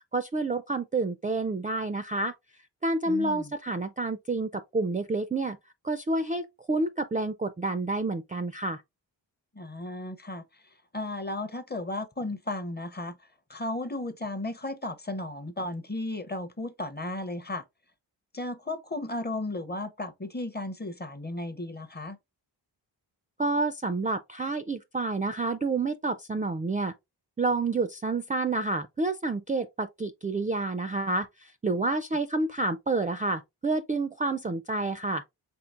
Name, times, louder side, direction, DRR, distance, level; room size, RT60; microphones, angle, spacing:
voice 1, 0.1-2.3 2.8-5.6 5.8-8.8 23.4-26.9 27.4-35.2, right 3 dB, 20° right, 0.3 m, -29 dB
voice 2, 3.0-3.5 9.5-17.6 18.3-22.2, left 2 dB, 20° left, 0.6 m, -35 dB
4.4 x 3.7 x 2.4 m
cardioid pair, 75°, 45 cm